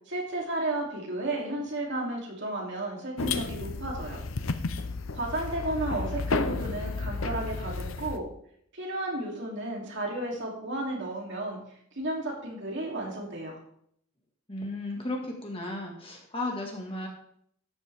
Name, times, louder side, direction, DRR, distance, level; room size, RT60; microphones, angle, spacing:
voice 1, 0.1-4.2 5.1-8.2 8.7-11.6 12.0-13.6, right 2 dB, 55° right, -2 dB, 3.1 m, -33 dB
sound 1, 3.2-8.2, left 4 dB, 65° left, 0.7 m, -32 dB
voice 2, 14.5-17.1, left 2 dB, 25° left, 1 dB, 1.8 m, -34 dB
12.5 x 9.3 x 3.5 m, 0.67 s
head